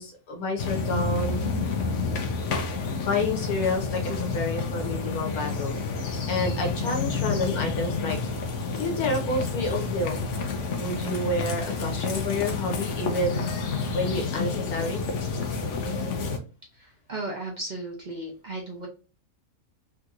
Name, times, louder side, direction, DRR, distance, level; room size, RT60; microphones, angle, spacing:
voice 1, 0.0-1.4 3.0-5.8 6.3-8.2 8.8-10.2 10.7-13.4 13.9-15.0, left 2 dB, 90° left, 2 dB, 1.5 m, -29 dB
sound 1, 0.6-16.4, left 4 dB, 60° left, 1.0 m, -29 dB
voice 2, 16.7-18.9, right 2 dB, 40° right, -1 dB, 0.7 m, -35 dB
3.6 x 2.9 x 2.4 m, 0.33 s
omnidirectional pair, 1.5 m